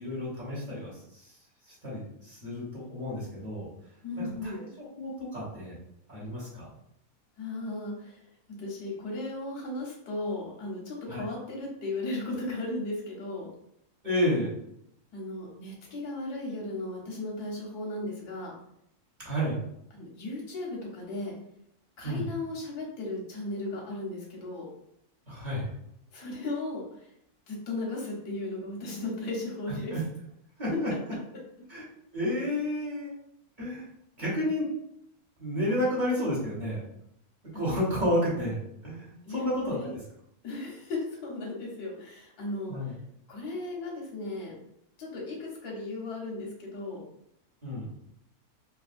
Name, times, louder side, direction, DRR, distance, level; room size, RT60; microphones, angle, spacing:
voice 1, 0.0-3.7 4.1-4.7 5.0-5.7 6.1-6.7 11.1-11.3 14.0-14.5 19.2-19.6 22.0-22.3 25.3-25.7 29.9-30.0 30.6-30.9 31.7-31.8 32.1-33.1 33.6-33.8 34.2-34.7 35.4-36.8 37.5-40.0 42.7-42.9 47.6-47.9, left 1 dB, 35° right, -8 dB, 1.2 m, -31 dB
voice 2, 4.0-4.6 7.4-8.2 8.6-13.5 15.1-18.5 19.9-21.3 22.0-24.6 26.1-26.8 27.5-29.9 30.7-30.8 35.7-35.9 37.5-37.6 39.2-39.9 40.4-42.7 43.3-44.6 45.0-47.0, left 2 dB, 90° left, -2 dB, 1.5 m, -36 dB
3.3 x 2.5 x 2.5 m, 0.75 s
omnidirectional pair, 1.6 m